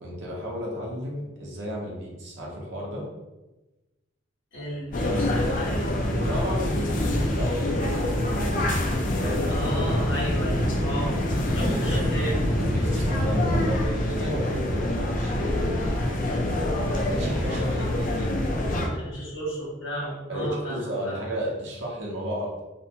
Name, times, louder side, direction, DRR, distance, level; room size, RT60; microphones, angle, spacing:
voice 1, 0.0-3.1 6.1-8.5 9.1-9.7 11.6-12.0 12.6-15.8 16.8-19.0 20.3-22.6, equal, 60° right, -2 dB, 0.6 m, -33 dB
voice 2, 4.5-6.0 9.5-11.2 11.5-12.4 18.9-21.2, equal, 65° left, -6 dB, 1.1 m, -33 dB
sound 1, 4.9-18.9, left 1 dB, 40° left, 0.3 m, -26 dB
sound 2, 4.9-13.9, equal, 30° right, 0.8 m, -30 dB
2.6 x 2.1 x 2.7 m, 1.1 s
head